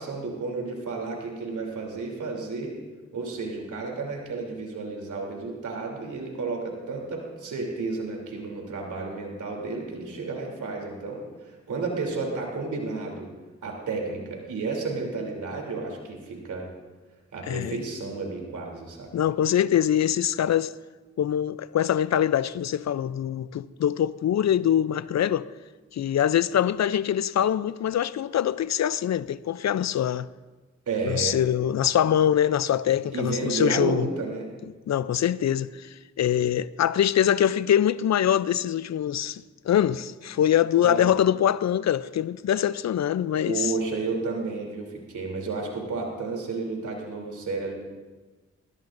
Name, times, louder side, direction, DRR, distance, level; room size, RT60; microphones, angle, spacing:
voice 1, 0.0-2.7 3.1-13.3 13.6-16.7 17.3-19.3 30.9-31.4 33.1-34.5 40.8-41.1 43.4-47.7, right 3 dB, 80° right, 3.2 m, -32 dB
voice 2, 17.5-17.8 19.1-20.7 21.2-25.5 25.9-30.3 31.0-34.1 34.9-35.9 36.2-43.7, left 10 dB, 65° left, 0.5 m, -24 dB
20.0 x 16.5 x 2.6 m
supercardioid pair, 45°, 30 cm